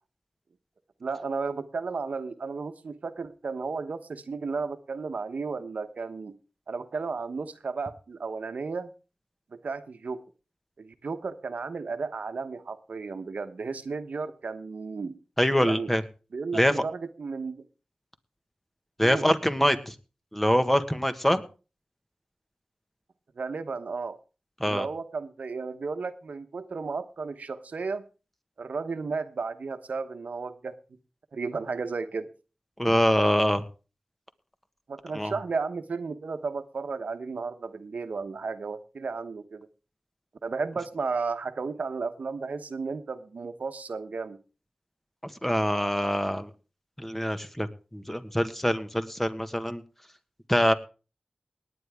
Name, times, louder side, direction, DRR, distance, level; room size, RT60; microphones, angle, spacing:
voice 1, 1.0-6.3 6.7-8.9 9.5-10.2 10.8-15.2 15.6-15.9 16.3-17.6 19.0-19.3 23.4-24.2 24.6-28.0 28.6-30.7 31.3-32.3 34.9-39.7 40.4-44.4, right 4 dB, 80° right, 9 dB, 1.1 m, -33 dB
voice 2, 15.4-16.0 16.5-16.7 19.0-19.9 20.3-21.4 24.6-24.9 32.8-33.6 35.1-35.3 45.2-46.5 47.0-49.8 50.5-50.7, equal, 10° left, 10 dB, 1.6 m, -24 dB
19.0 x 9.9 x 3.6 m, 0.34 s
cardioid pair, 40°, 3 cm